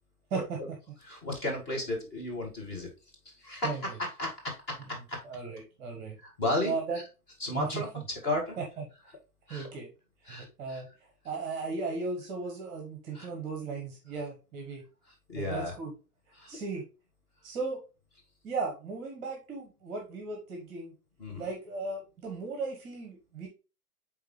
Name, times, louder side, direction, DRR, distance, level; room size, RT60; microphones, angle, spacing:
voice 1, 1.0-2.9 3.3-5.2 6.2-7.0 7.4-7.9 8.2-8.6 9.5-9.7 10.3-10.8 13.1-13.3 15.3-15.7 16.4-16.6 21.2-21.5, left 1 dB, 20° left, -1 dB, 1.8 m, -34 dB
voice 2, 5.2-6.2 6.6-7.0 7.5-7.8 8.6-8.7 9.5-9.9 10.2-10.9 11.2-14.8 15.3-15.9 16.5-16.8 17.4-17.8 18.4-20.9 21.4-23.5, right 4 dB, 20° right, 2 dB, 1.2 m, -36 dB
8.8 x 3.6 x 3.1 m, 0.31 s
figure-of-eight pair, 120°, 47 cm